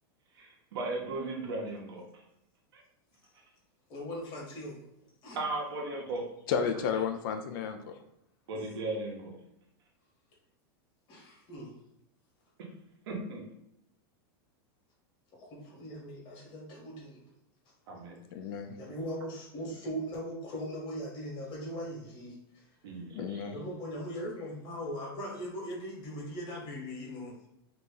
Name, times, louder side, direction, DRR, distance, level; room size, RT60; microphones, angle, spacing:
voice 1, 0.3-2.0 5.3-6.2 8.5-9.3 12.6-12.7 13.1-13.5 17.9-18.2 22.8-23.5, right 2 dB, 75° right, 0 dB, 1.0 m, -36 dB
voice 2, 3.9-4.8 5.2-5.4 6.1-6.2 8.5-8.8 11.1-11.8 15.4-17.2 18.8-22.7 23.5-27.4, equal, 40° left, -2 dB, 1.3 m, -40 dB
voice 3, 6.5-8.0 18.3-18.8 23.1-23.5, left 6 dB, 60° left, 6 dB, 0.4 m, -32 dB
2.9 x 2.5 x 3.8 m, 0.80 s
supercardioid pair, 135°, 13 cm